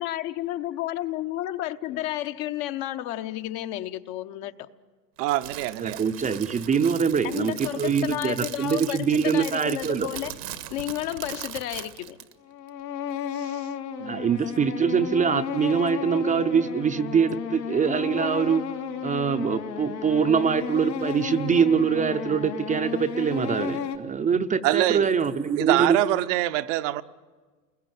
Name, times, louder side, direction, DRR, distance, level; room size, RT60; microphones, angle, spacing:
voice 1, 0.0-4.7 7.2-10.3 10.7-12.2, left 14 dB, 45° left, 1.0 m, -31 dB
voice 2, 5.2-6.0 13.4-13.6 14.0-14.3 24.6-25.1 25.6-27.0, right 15 dB, 50° right, 0.8 m, -24 dB
Crackle, 5.2-12.3, right 12 dB, 80° right, 1.7 m, -40 dB
voice 3, 5.8-10.1 14.1-18.6 19.0-26.0, right 6 dB, 15° right, 0.7 m, -24 dB
sound 1, 12.5-24.0, left 7 dB, 90° left, 2.8 m, -33 dB
29.5 x 21.5 x 7.7 m
hypercardioid pair, 110°, 49 cm